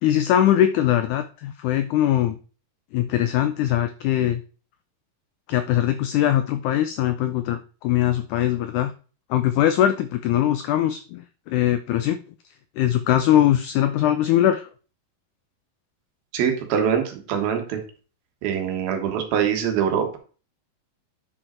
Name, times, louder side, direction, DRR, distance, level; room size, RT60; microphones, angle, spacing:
voice 1, 0.0-2.4 2.9-4.4 5.5-8.9 9.3-12.2 12.8-14.7, left 11 dB, 90° left, 9 dB, 1.7 m, -21 dB
voice 2, 16.3-17.8 18.4-20.2, right 8 dB, 85° right, 4 dB, 3.2 m, -23 dB
10.0 x 5.0 x 4.3 m, 0.38 s
omnidirectional pair, 4.1 m